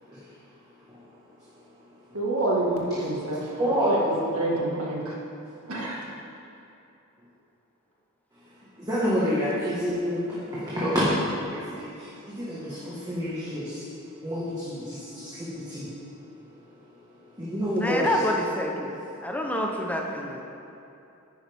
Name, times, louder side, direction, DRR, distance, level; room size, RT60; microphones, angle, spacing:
voice 1, 2.1-4.0 4.3-5.2 5.7-6.1, right 2 dB, 85° right, -3 dB, 1.9 m, -28 dB
voice 2, 3.6-4.2 8.8-11.0 11.5-13.8 14.2-15.9 17.4-18.2, equal, 20° right, -9 dB, 1.6 m, -28 dB
voice 3, 17.8-18.9 19.2-20.4, left 1 dB, 5° left, 1 dB, 0.9 m, -27 dB
10.5 x 9.3 x 3.6 m, 2.8 s
head